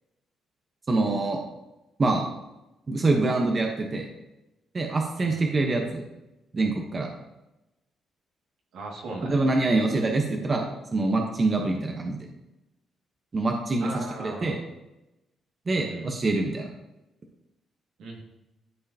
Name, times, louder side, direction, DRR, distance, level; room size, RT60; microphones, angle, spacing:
voice 1, 0.9-1.4 2.0-2.2 2.9-4.1 4.7-6.0 6.5-7.1 9.2-12.2 13.3-13.9 14.2-14.6 15.7-16.7, right 2 dB, 35° right, 2 dB, 1.0 m, -25 dB
voice 2, 8.7-9.5 13.8-14.6 15.7-16.1 18.0-18.2, right 2 dB, 75° right, -1 dB, 2.1 m, -37 dB
12.0 x 4.7 x 2.8 m, 0.96 s
cardioid pair, 90°, 0 cm